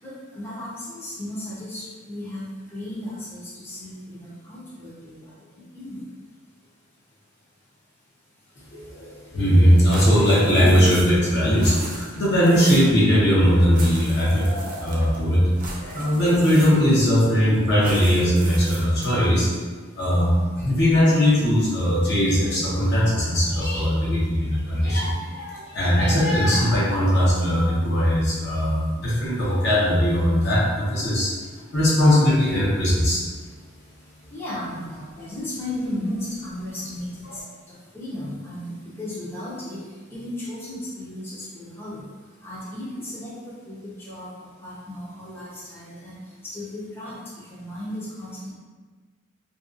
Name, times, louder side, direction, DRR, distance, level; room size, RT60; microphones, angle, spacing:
voice 1, 0.0-2.4 2.7-6.0 34.3-37.1 37.9-39.8 40.1-42.0 42.4-43.3 43.7-44.3 44.6-46.2 46.5-47.1 47.5-48.5, left 1 dB, 10° left, -10 dB, 0.6 m, -35 dB
voice 2, 8.7-19.5 20.0-31.3 31.7-33.2, equal, 55° left, -7 dB, 0.8 m, -19 dB
sound 1, 9.9-11.3 11.5-13.0 13.7-15.2 15.6-17.0 17.8-19.2, right 2 dB, 40° right, 0.4 m, -38 dB
2.6 x 2.3 x 2.4 m, 1.4 s
head